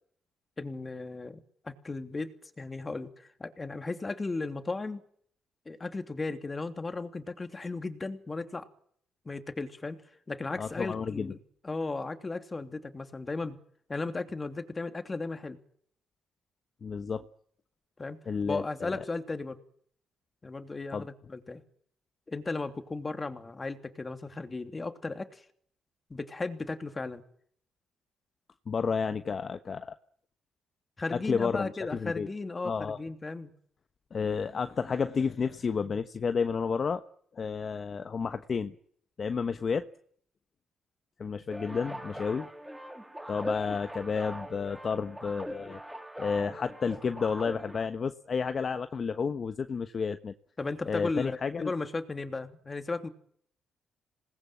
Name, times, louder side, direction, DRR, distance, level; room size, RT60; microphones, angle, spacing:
voice 1, 0.6-5.0 5.6-8.7 9.2-10.0 10.3-11.4 11.6-13.6 13.9-15.6 18.0-18.2 18.4-19.6 20.4-21.6 22.3-25.4 26.1-27.2 31.0-33.5 50.6-53.1, left 3 dB, 25° left, 8 dB, 2.9 m, -35 dB
voice 2, 10.6-11.3 16.8-17.2 18.3-19.0 20.9-21.0 28.7-29.9 31.1-32.3 32.6-33.0 34.1-37.0 37.3-38.7 39.2-39.9 41.2-42.5 43.3-45.8 46.2-50.3 50.9-51.7, left 5 dB, 45° left, 10 dB, 1.2 m, -31 dB
sound 1, 41.5-47.9, equal, 5° right, 3.8 m, -41 dB
27.0 x 20.0 x 7.5 m, 0.63 s
cardioid pair, 90°, 0 cm